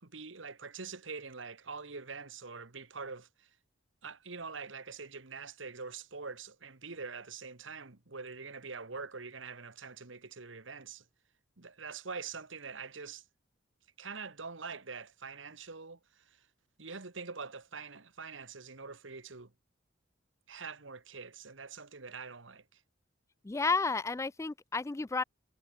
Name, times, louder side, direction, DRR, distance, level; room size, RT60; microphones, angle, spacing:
voice 1, 0.0-3.5 4.0-11.0 11.6-13.2 14.0-16.0 16.8-19.5 20.5-22.8, right 4 dB, 70° right, 1.7 m, -44 dB
voice 2, 23.4-25.2, left 4 dB, 15° left, 0.3 m, -31 dB
head